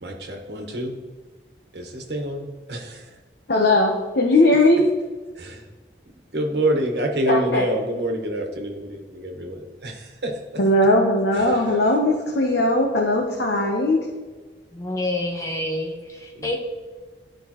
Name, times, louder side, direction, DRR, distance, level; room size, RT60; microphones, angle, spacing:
voice 1, 0.0-1.0 1.7-3.1 5.3-5.7 6.3-10.4 11.3-11.7 16.3-16.5, right 1 dB, 65° right, 2 dB, 1.3 m, -27 dB
voice 2, 3.5-4.8 7.3-7.6 10.6-14.0, left 1 dB, 65° left, 0 dB, 0.9 m, -19 dB
voice 3, 14.7-16.6, left 1 dB, 15° left, 1 dB, 1.1 m, -28 dB
12.0 x 5.2 x 3.0 m, 1.3 s
head